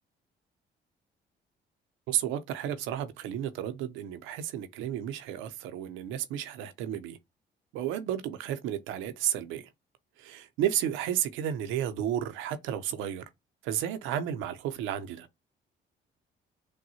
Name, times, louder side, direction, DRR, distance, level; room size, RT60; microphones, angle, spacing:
voice 1, 2.1-7.2 7.7-9.7 10.2-13.2 13.6-15.3, right 10 dB, 85° right, 0.7 m, -32 dB
6.3 x 2.2 x 2.8 m
supercardioid pair, 70°, 20 cm